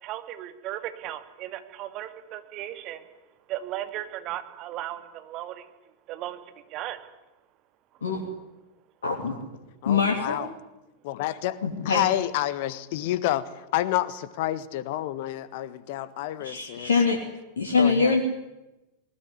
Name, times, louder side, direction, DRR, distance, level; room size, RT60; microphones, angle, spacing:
voice 1, 0.0-3.2 3.5-5.7 6.1-7.1, right 13 dB, 40° right, 9 dB, 2.3 m, -36 dB
voice 2, 9.0-9.4 9.9-10.4 11.6-12.0 16.4-17.2 17.6-18.2, left 5 dB, 70° left, 2 dB, 2.8 m, -23 dB
voice 3, 9.8-10.5 11.0-16.9 17.8-18.2, left 14 dB, 50° left, 16 dB, 1.5 m, -29 dB
20.0 x 19.5 x 9.9 m, 0.99 s
figure-of-eight pair, 90°, 0 cm